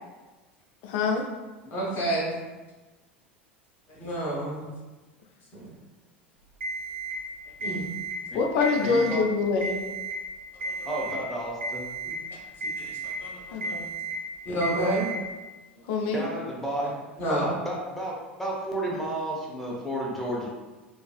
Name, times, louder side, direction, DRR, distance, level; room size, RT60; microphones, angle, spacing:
voice 1, 0.8-1.2 8.3-9.8 13.5-13.9 15.9-16.2, left 4 dB, 55° left, 3 dB, 0.4 m, -25 dB
voice 2, 1.7-2.3 4.0-4.7 5.5-5.6 7.6-7.8 10.6-10.9 12.8-12.9 13.2-13.7 14.5-15.1 16.8-16.9 17.2-17.5, right 1 dB, 40° left, -6 dB, 0.9 m, -29 dB
Alarm, 6.6-7.2 7.6-8.2 8.5-9.2 9.6-10.2 10.6-11.2 11.6-12.2 12.6-13.2 13.6-14.2 14.6-15.2, right 3 dB, 70° right, 0.6 m, -33 dB
voice 3, 8.8-9.2 10.9-11.9 16.1-16.9 17.3-20.5, right 1 dB, 5° left, -4 dB, 0.6 m, -32 dB
2.4 x 2.4 x 2.3 m, 1.2 s
figure-of-eight pair, 80°, 6 cm